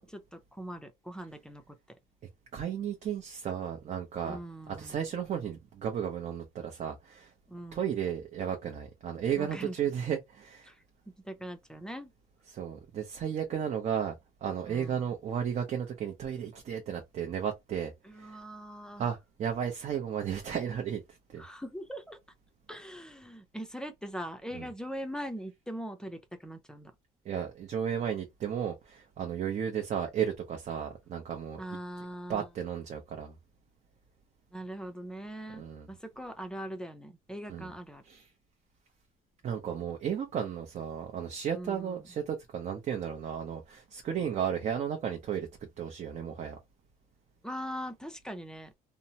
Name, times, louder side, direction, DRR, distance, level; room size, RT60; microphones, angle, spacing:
voice 1, 0.3-1.8 4.2-5.0 7.5-7.8 9.4-9.8 10.7-10.8 11.2-12.1 14.7-15.0 18.0-19.1 21.4-22.2 22.7-26.9 31.6-32.5 34.5-38.0 41.5-42.1 47.4-48.7, equal, 5° left, 0.5 m, -41 dB
voice 2, 2.5-4.4 4.7-7.3 7.7-10.7 12.5-14.1 14.4-18.4 19.0-21.0 21.3-21.4 24.5-24.7 27.2-31.6 32.3-33.3 35.6-35.9 37.5-37.7 38.1-38.3 39.4-45.5 45.8-46.6, right 8 dB, 45° right, 0.6 m, -34 dB
2.8 x 2.1 x 2.7 m
cardioid pair, 120°, 17 cm